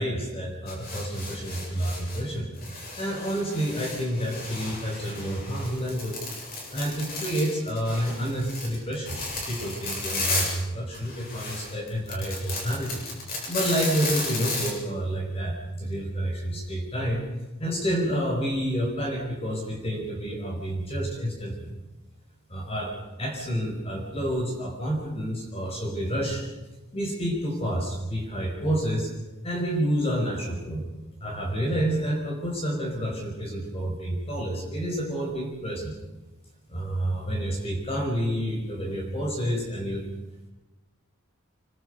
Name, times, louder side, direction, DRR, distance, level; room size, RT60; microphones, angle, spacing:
voice 1, 0.0-2.5 3.0-6.2 6.7-9.2 9.5-13.0 13.5-17.2 17.6-21.7 22.5-26.4 26.9-29.1 29.4-30.8 31.2-35.9 36.7-40.0, equal, 30° left, 0 dB, 5.7 m, -29 dB
sound 1, 0.7-2.2 2.5-10.6 10.9-14.7, left 2 dB, 45° left, 8.0 m, -34 dB
27.0 x 24.5 x 5.3 m, 1.1 s
head